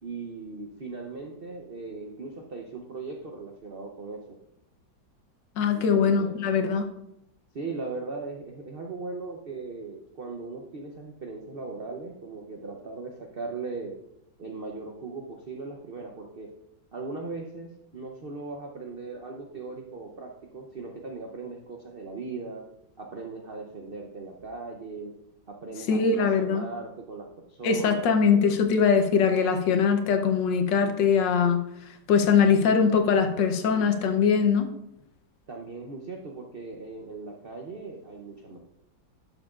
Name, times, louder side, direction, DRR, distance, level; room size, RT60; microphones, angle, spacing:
voice 1, 0.0-4.4 5.7-6.3 7.5-13.9 14.4-16.5 16.9-22.6 23.0-25.1 25.5-28.2 35.5-38.6, right 3 dB, 65° right, 2 dB, 0.5 m, -38 dB
voice 2, 5.6-6.9 25.9-26.7 27.6-34.7, left 6 dB, 75° left, 6 dB, 1.4 m, -22 dB
12.0 x 6.7 x 2.4 m, 0.81 s
omnidirectional pair, 2.0 m